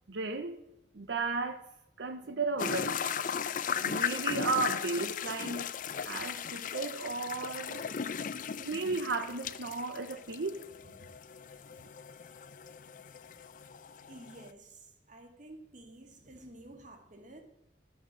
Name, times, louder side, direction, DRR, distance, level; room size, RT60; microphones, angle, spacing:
voice 1, 0.1-0.6 0.9-1.6 2.0-3.0 3.7-5.7 6.0-7.8 8.5-10.6, right 3 dB, 85° right, 8 dB, 0.7 m, -34 dB
sound 1, 2.6-14.5, left 7 dB, 50° left, 0.5 m, -37 dB
voice 2, 14.1-17.4, right 1 dB, 45° right, 4 dB, 1.7 m, -51 dB
11.5 x 7.3 x 6.2 m, 0.85 s
head